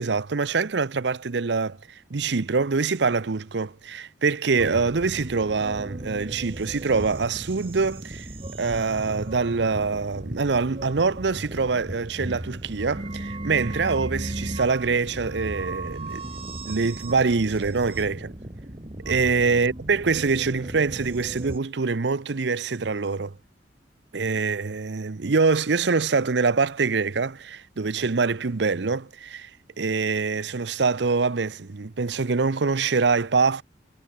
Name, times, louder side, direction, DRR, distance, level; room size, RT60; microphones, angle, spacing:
voice 1, 0.0-8.3 8.6-16.2 16.7-18.3 19.1-23.3 24.1-29.5 29.8-33.6, right 4 dB, 65° right, 0.7 m, -24 dB
sound 1, 4.6-21.6, right 1 dB, 30° right, 1.8 m, -36 dB
head